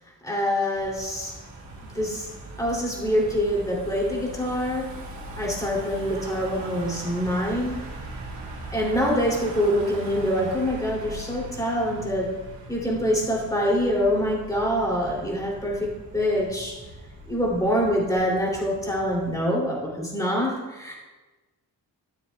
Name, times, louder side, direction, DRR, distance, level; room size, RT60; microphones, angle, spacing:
voice 1, 0.2-1.3 1.9-2.3 2.6-5.1 5.3-7.8 8.7-12.4 12.7-16.8 17.3-20.9, equal, 10° left, -3 dB, 2.7 m, -25 dB
Car passing by / Engine, 0.7-19.4, right 1 dB, 80° right, 2.5 m, -40 dB
13.5 x 7.1 x 2.3 m, 1.2 s
cardioid pair, 100°, 41 cm